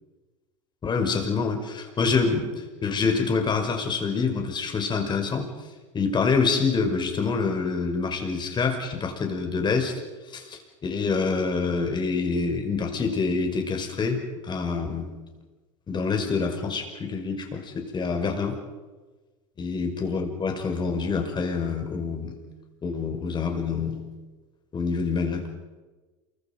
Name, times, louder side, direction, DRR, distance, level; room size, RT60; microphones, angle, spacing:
voice 1, 0.8-5.5 5.9-10.0 10.3-15.1 15.9-18.6 19.6-22.4 22.8-24.0 24.7-25.4, left 4 dB, 25° left, 4 dB, 5.5 m, -26 dB
28.0 x 24.0 x 5.4 m, 1.2 s
hypercardioid pair, 100°, 17 cm